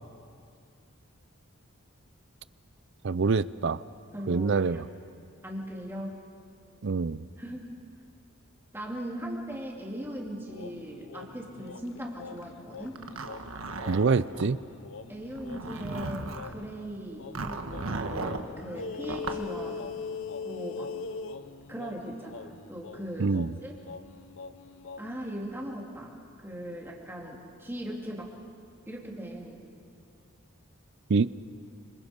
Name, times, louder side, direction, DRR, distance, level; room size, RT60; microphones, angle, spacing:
voice 1, 3.0-3.8 4.3-4.9 6.8-7.3 13.9-14.6 23.2-23.6 31.1-31.3, right 4 dB, 60° right, 18 dB, 0.5 m, -25 dB
voice 2, 4.1-4.8 5.4-6.2 7.4-7.7 8.7-13.0 15.1-19.9 20.4-20.9 21.7-23.7 25.0-28.3 28.9-29.6, equal, 10° right, -2 dB, 3.0 m, -39 dB
sound 1, 10.5-16.8 17.2-25.3, left 5 dB, 65° left, 0.7 m, -42 dB
Zipper (clothing), 13.0-14.5 15.3-16.5 17.3-18.5 19.0-19.4, right 3 dB, 75° right, 1.4 m, -36 dB
27.5 x 26.5 x 5.4 m, 2.4 s
head